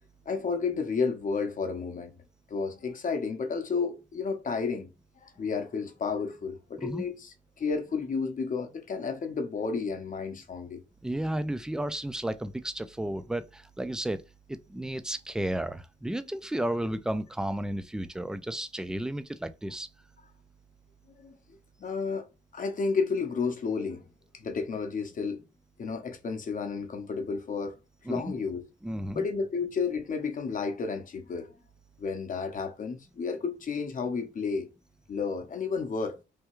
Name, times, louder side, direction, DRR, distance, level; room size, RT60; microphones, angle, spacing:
voice 1, 0.3-2.1 2.5-4.9 5.2-10.8 21.2-21.3 21.8-22.2 22.5-24.0 24.3-25.4 25.8-27.7 28.1-28.7 29.1-31.5 32.0-34.7 35.1-36.2, left 5 dB, 40° left, 0.7 m, -31 dB
voice 2, 11.0-14.2 14.5-19.9 28.1-28.3 28.8-29.2, right 1 dB, 5° right, 0.3 m, -33 dB
3.4 x 2.3 x 3.0 m
cardioid pair, 90°, 20 cm